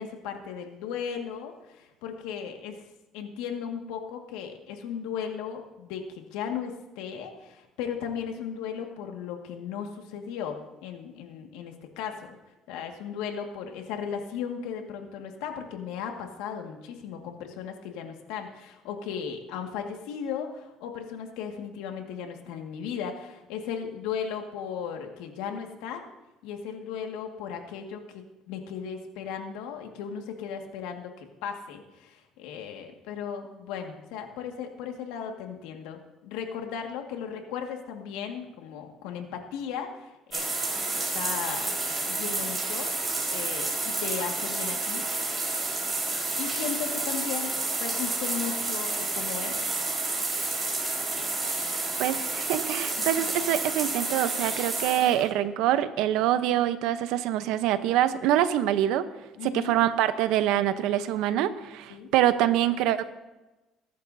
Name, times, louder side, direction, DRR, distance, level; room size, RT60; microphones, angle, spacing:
voice 1, 0.0-2.8 3.1-12.4 12.7-26.1 26.4-40.5 41.1-45.1 46.4-47.6 47.8-49.7 53.2-53.3 59.4-59.8 61.9-62.1, left 7 dB, 90° left, 3 dB, 1.9 m, -36 dB
sound 1, 40.3-55.3, right 3 dB, 20° right, 4.4 m, -30 dB
voice 2, 52.0-59.1 59.4-63.1, right 12 dB, 80° right, 12 dB, 0.8 m, -25 dB
22.0 x 11.5 x 2.8 m, 1.1 s
cardioid pair, 125°, 0 cm